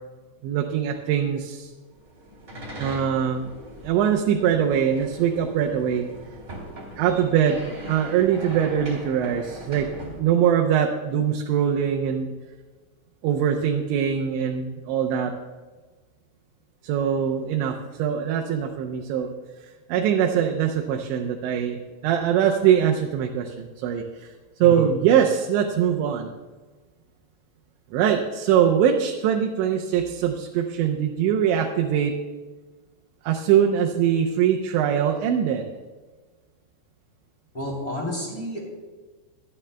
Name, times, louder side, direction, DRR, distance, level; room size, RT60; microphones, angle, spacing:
voice 1, 0.4-1.7 2.8-3.5 3.8-6.1 7.0-9.9 10.2-12.3 13.2-15.3 16.8-19.3 19.9-24.3 24.6-26.3 27.9-32.1 33.2-35.7, right 9 dB, 80° right, 1 dB, 3.0 m, -22 dB
sound 1, 1.9-10.2, right 1 dB, 25° right, 2.6 m, -40 dB
voice 2, 24.6-24.9 37.5-38.7, equal, 10° left, -2 dB, 2.4 m, -30 dB
24.5 x 9.7 x 2.2 m, 1.3 s
omnidirectional pair, 5.3 m